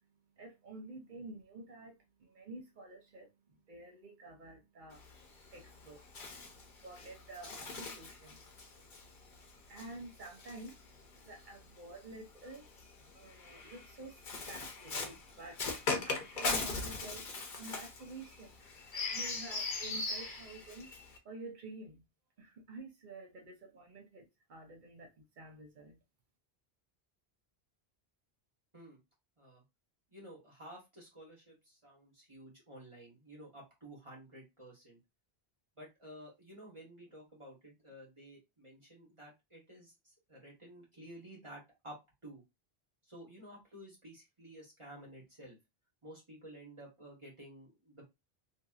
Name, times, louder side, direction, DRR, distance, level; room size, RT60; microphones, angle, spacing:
voice 1, 0.4-5.0 5.5-6.1 6.8-8.5 9.7-12.7 13.1-18.6 19.1-20.9 21.2-22.0 22.4-26.0, right 2 dB, 55° right, 0.8 m, -50 dB
Bird, 4.9-11.4 12.4-21.2, left 3 dB, 55° left, 0.8 m, -40 dB
voice 2, 30.1-35.0 35.8-42.4 43.0-45.6 46.0-48.0, right 1 dB, 30° right, 1.2 m, -53 dB
2.7 x 2.5 x 2.3 m
omnidirectional pair, 1.1 m